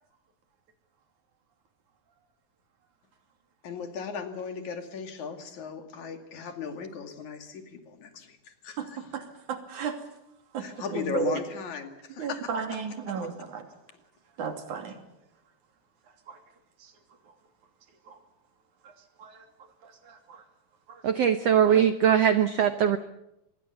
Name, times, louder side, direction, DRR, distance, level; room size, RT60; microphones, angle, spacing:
voice 1, 3.6-9.1 10.6-12.8 13.1-13.3, left 6 dB, 55° left, 6 dB, 3.6 m, -37 dB
voice 2, 9.1-10.0 10.5-10.7 10.9-11.4 12.2-13.6 14.4-15.0 16.3-16.4 18.1-18.2 19.2-19.4 19.8-20.4 20.9-21.0, right 6 dB, 55° right, 6 dB, 4.1 m, -34 dB
voice 3, 21.0-23.0, right 9 dB, 75° right, 10 dB, 1.4 m, -21 dB
25.5 x 21.5 x 7.2 m, 0.83 s
omnidirectional pair, 4.4 m